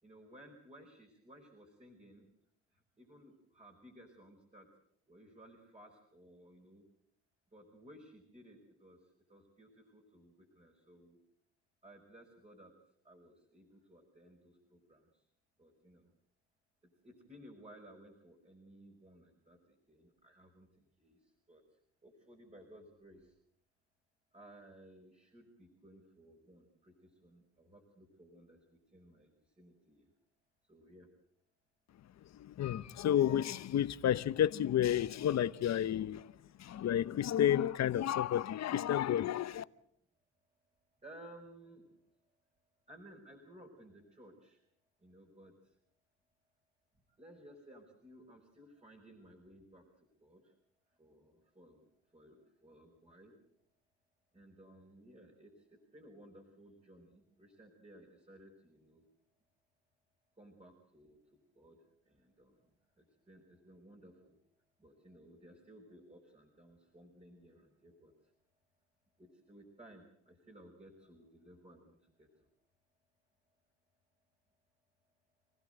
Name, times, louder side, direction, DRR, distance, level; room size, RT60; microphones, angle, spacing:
voice 1, 0.0-2.3 2.7-4.7 5.1-6.8 7.5-11.2 11.8-12.7 13.0-15.3 15.6-16.1 17.0-23.3 24.3-30.1 30.6-31.1 41.0-41.8 42.9-44.6 45.0-45.7 47.2-50.5 51.0-53.3 54.3-59.1 60.4-61.8 62.0-64.4 64.8-68.3 69.2-72.5, right 1 dB, 20° right, 5.1 m, -58 dB
voice 2, 32.3-36.3 36.6-39.6, left 10 dB, 60° left, 0.9 m, -31 dB
27.0 x 16.0 x 7.9 m
cardioid pair, 90°, 30 cm